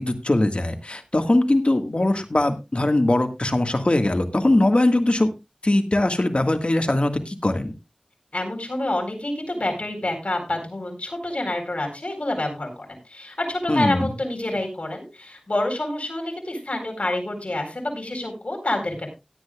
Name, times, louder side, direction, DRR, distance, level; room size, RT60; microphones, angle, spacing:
voice 1, 0.0-5.3 5.6-7.7 13.7-14.1, left 1 dB, 60° left, 6 dB, 1.7 m, -21 dB
voice 2, 8.3-19.1, left 1 dB, 75° left, 3 dB, 4.3 m, -28 dB
17.0 x 10.5 x 2.4 m, 0.25 s
wide cardioid pair, 45°, 2 cm